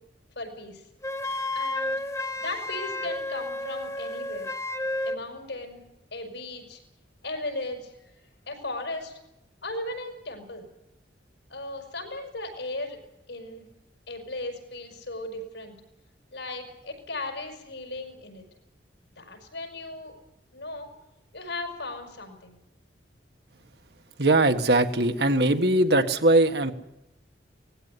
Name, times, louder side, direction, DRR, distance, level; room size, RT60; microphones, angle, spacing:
voice 1, 0.4-0.8 1.5-2.1 2.4-4.5 5.0-5.8 6.1-6.8 7.2-8.1 8.5-9.1 9.6-10.7 11.5-13.0 13.3-13.7 14.1-15.7 16.3-18.4 19.2-20.1 20.5-20.9 21.3-22.6, left 2 dB, 80° left, 4 dB, 5.6 m, -36 dB
Wind instrument woodwind instrument, 1.0-5.2, left 2 dB, 15° left, 0.7 m, -31 dB
voice 2, 24.2-26.7, right 2 dB, 65° right, 7 dB, 1.6 m, -21 dB
19.0 x 16.0 x 9.7 m, 0.85 s
head